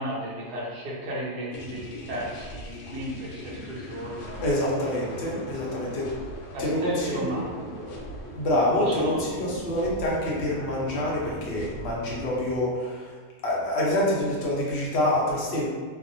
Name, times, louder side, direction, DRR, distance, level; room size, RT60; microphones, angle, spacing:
voice 1, 0.0-4.5 4.8-5.0 5.9-6.1 6.5-8.1 8.8-9.2, equal, 80° right, -6 dB, 1.3 m, -34 dB
sound 1, 1.5-12.6, left 1 dB, 75° left, 1.2 m, -40 dB
voice 2, 4.4-6.1 6.6-7.3 8.4-13.2 13.4-15.7, left 1 dB, 55° left, -5 dB, 0.8 m, -26 dB
3.3 x 2.0 x 2.5 m, 1.5 s
omnidirectional pair, 1.7 m